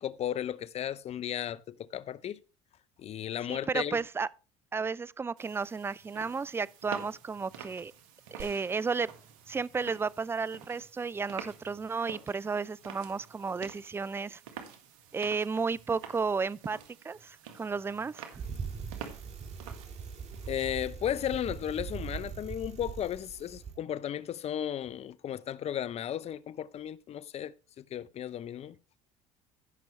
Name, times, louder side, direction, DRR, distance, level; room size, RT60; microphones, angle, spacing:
voice 1, 0.0-2.4 3.0-4.0 20.5-28.8, left 10 dB, 40° left, 0.6 m, -35 dB
voice 2, 3.5-4.3 4.7-7.9 8.4-9.1 9.5-14.4 15.1-16.8 17.0-18.4, right 5 dB, 15° right, 0.4 m, -33 dB
sound 1, 5.4-20.9, right 7 dB, 80° right, 1.7 m, -49 dB
sound 2, 8.4-10.3 10.7-10.8, right 5 dB, 65° right, 1.9 m, -53 dB
Bicycle, 18.3-23.8, right 6 dB, 45° right, 1.9 m, -41 dB
15.5 x 6.1 x 3.2 m
hypercardioid pair, 80°, 16 cm